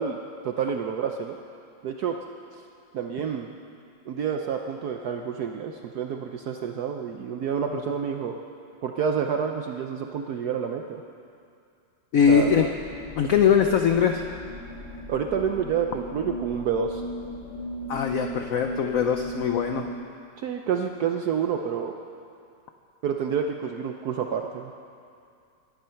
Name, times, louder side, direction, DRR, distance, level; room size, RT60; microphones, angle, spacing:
voice 1, 0.0-1.4 1.8-2.2 2.5-2.6 2.9-3.5 4.1-8.4 8.8-11.0 12.3-12.5 15.1-17.0 20.4-21.9 23.0-24.7, right 7 dB, 65° right, 4 dB, 1.1 m, -28 dB
voice 2, 12.1-12.7 13.2-14.2 17.9-19.9, left 7 dB, 60° left, 5 dB, 1.0 m, -21 dB
sound 1, 12.2-19.9, left 1 dB, 35° left, 2.4 m, -37 dB
23.5 x 11.0 x 5.7 m, 2.5 s
omnidirectional pair, 2.0 m